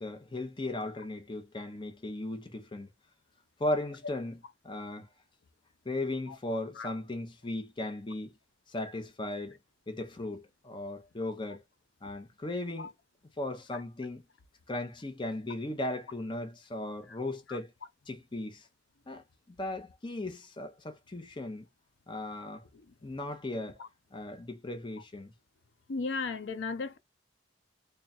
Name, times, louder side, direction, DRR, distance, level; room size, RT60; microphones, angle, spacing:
voice 1, 0.0-2.9 3.6-4.4 4.6-5.1 5.9-8.3 8.7-9.6 9.9-11.6 12.0-12.9 13.4-14.2 14.7-17.7 18.1-18.7 19.1-19.2 19.5-21.7 22.1-22.6 23.0-23.8 24.1-25.3, left 2 dB, 25° left, 0.6 m, -37 dB
voice 2, 25.9-27.0, left 4 dB, 75° left, 0.6 m, -35 dB
3.3 x 2.3 x 4.1 m
head